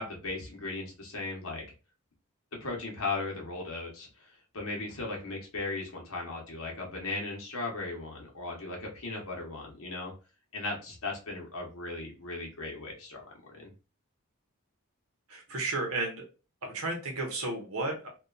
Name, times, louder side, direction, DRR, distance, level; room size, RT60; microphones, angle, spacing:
voice 1, 0.0-1.6 2.6-10.1 10.5-13.7, left 3 dB, 75° left, -1 dB, 0.8 m, -37 dB
voice 2, 15.3-16.2 16.6-18.1, right 2 dB, 80° right, 2 dB, 0.9 m, -33 dB
2.7 x 2.2 x 2.3 m, 0.32 s
head